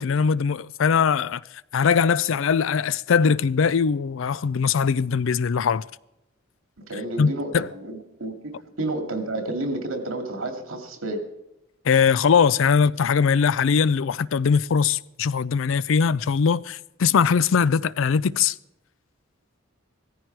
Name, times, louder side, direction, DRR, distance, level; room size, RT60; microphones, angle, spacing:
voice 1, 0.0-1.4 1.7-5.8 7.2-7.7 11.9-18.5, left 6 dB, 70° left, 0.4 m, -21 dB
voice 2, 6.9-11.2, right 2 dB, 85° right, 2.4 m, -30 dB
17.0 x 14.5 x 4.7 m
head